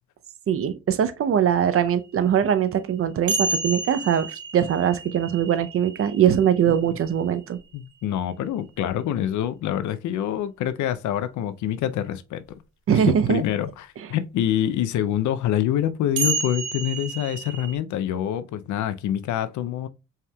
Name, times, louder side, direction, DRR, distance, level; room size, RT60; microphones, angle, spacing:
voice 1, 0.5-7.6 12.9-13.4, right 9 dB, 50° right, 0.6 m, -21 dB
sound 1, 3.3-7.6 9.4-9.5 12.5-12.6 16.2-17.7, right 3 dB, 70° right, 0.9 m, -30 dB
voice 2, 6.7-7.0 7.7-12.4 12.9-19.9, left 11 dB, 75° left, 0.5 m, -26 dB
5.5 x 3.5 x 2.2 m
cardioid pair, 90°, 30 cm